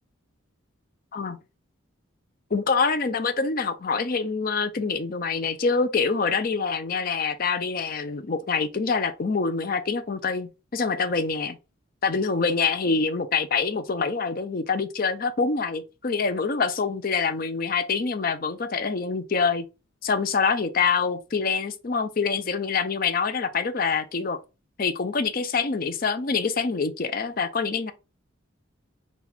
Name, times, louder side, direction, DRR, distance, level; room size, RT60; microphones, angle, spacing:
voice 1, 2.5-11.6 12.0-19.6 20.0-24.4 24.8-27.9, left 5 dB, 45° left, 0.5 m, -25 dB
4.3 x 2.4 x 4.0 m
head